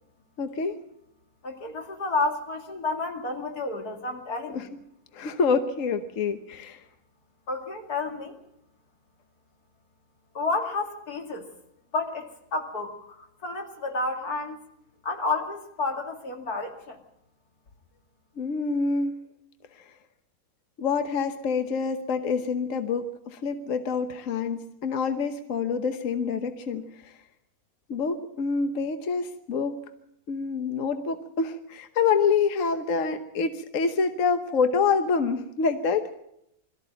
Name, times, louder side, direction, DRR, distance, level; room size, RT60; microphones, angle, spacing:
voice 1, 0.4-0.8 4.5-4.7 5.1-6.8 18.4-19.2 19.8-19.9 20.8-27.1 27.9-29.8 30.3-36.1, left 5 dB, 60° left, 8 dB, 1.4 m, -27 dB
voice 2, 1.4-4.7 7.5-8.4 10.3-11.5 11.9-14.6 15.0-17.0, left 3 dB, 85° left, 3 dB, 2.9 m, -30 dB
22.0 x 14.0 x 8.9 m, 0.79 s
omnidirectional pair, 1.6 m